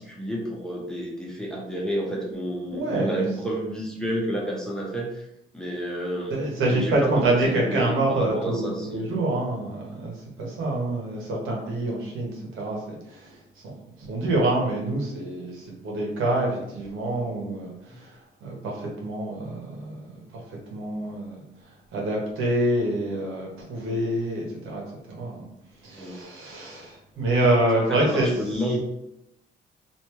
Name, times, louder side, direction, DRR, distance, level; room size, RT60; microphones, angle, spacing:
voice 1, 0.0-5.2 5.5-6.4 6.7-9.2 17.9-18.0 25.9-26.2 27.9-28.8, right 1 dB, 5° left, -3 dB, 1.0 m, -30 dB
voice 2, 2.7-3.3 6.3-24.8 25.1-25.5 25.8-28.3, right 1 dB, 90° right, -2 dB, 1.1 m, -27 dB
3.2 x 2.6 x 3.0 m, 0.82 s
cardioid pair, 90°, 20 cm